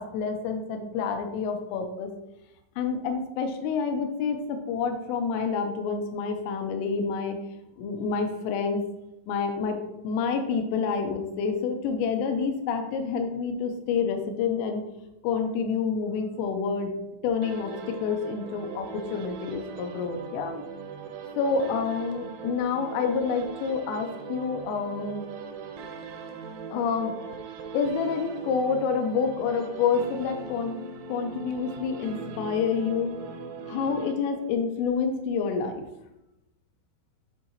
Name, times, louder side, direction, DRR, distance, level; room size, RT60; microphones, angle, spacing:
voice 1, 0.0-2.1 2.8-7.4 7.8-8.8 9.3-14.8 15.2-16.9 17.2-20.6 21.4-25.2 26.7-27.2 27.7-30.8 31.1-33.1 33.7-35.8, left 5 dB, 85° left, 5 dB, 3.2 m, -28 dB
sound 1, 17.4-34.6, right 5 dB, 80° right, 3.0 m, -40 dB
10.5 x 3.7 x 2.8 m, 0.89 s
omnidirectional pair, 5.9 m